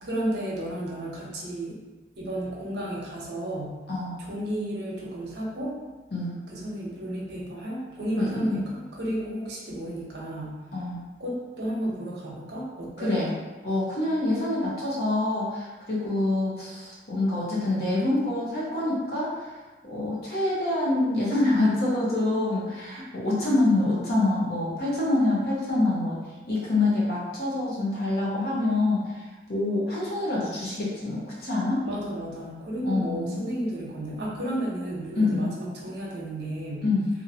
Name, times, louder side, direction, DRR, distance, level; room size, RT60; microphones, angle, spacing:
voice 1, 0.0-1.8 2.2-3.8 4.2-5.7 6.5-10.6 11.2-13.2 31.8-36.9, right 1 dB, 80° right, -4 dB, 0.8 m, -32 dB
voice 2, 6.1-6.4 8.2-8.6 10.7-11.0 13.0-13.3 13.6-19.6 19.8-26.2 26.5-31.8 32.8-33.5 35.2-35.5 36.8-37.1, left 2 dB, 65° left, -6 dB, 0.9 m, -26 dB
2.8 x 2.7 x 2.7 m, 1.2 s
head